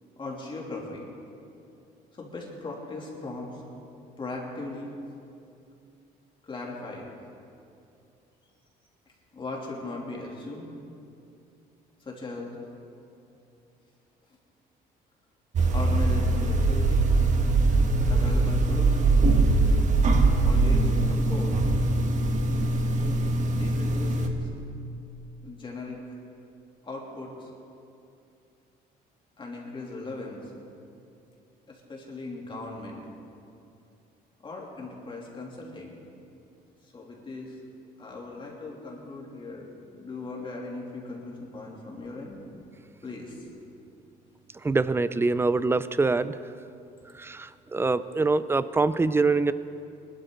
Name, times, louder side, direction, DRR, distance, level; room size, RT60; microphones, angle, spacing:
voice 1, 0.2-1.1 2.1-3.6 4.2-4.9 6.4-7.1 9.3-10.7 12.0-12.6 15.7-17.1 18.1-19.1 20.4-21.5 23.5-24.5 25.4-26.0 26.8-27.5 29.4-30.5 31.7-33.0 34.4-35.9 36.8-37.6 38.0-39.7 39.9-42.4 43.0-43.5, left 2 dB, 30° left, -2 dB, 2.9 m, -38 dB
sound 1, 15.5-24.3, right 2 dB, 45° right, 1.4 m, -22 dB
voice 2, 44.5-46.4 47.1-49.5, right 3 dB, 15° right, 14 dB, 0.4 m, -24 dB
21.0 x 12.5 x 3.9 m, 2.6 s
cardioid pair, 110°, 17 cm